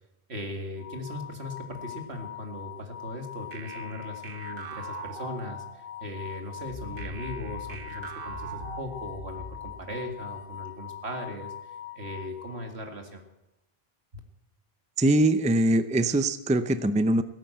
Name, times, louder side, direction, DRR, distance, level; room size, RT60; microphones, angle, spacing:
voice 1, 0.3-13.2, left 1 dB, 80° right, 4 dB, 2.4 m, -38 dB
sound 1, 0.8-13.0, left 10 dB, 20° left, 1.9 m, -42 dB
sound 2, 3.5-6.0 7.0-9.5, right 7 dB, 60° right, 1.0 m, -43 dB
sound 3, 6.6-10.7, left 2 dB, 50° left, 1.8 m, -43 dB
voice 2, 15.0-17.2, right 1 dB, 10° right, 11 dB, 0.5 m, -22 dB
16.5 x 9.1 x 7.7 m, 0.92 s
omnidirectional pair, 1.1 m